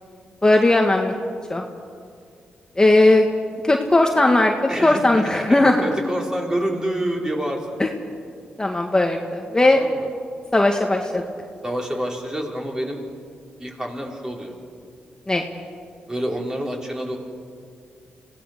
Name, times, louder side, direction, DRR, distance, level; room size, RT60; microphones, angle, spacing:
voice 1, 0.4-1.1 1.5-1.6 2.8-3.3 3.6-5.9 7.8-7.9 8.6-9.8 10.5-11.2 15.3-15.4, left 2 dB, 20° left, 2 dB, 1.7 m, -17 dB
voice 2, 4.7-7.7 9.6-10.1 11.6-13.0 13.6-14.6 16.1-17.2, right 1 dB, 15° right, 0 dB, 4.9 m, -27 dB
25.5 x 17.0 x 6.8 m, 2.2 s
cardioid pair, 60°, 4 cm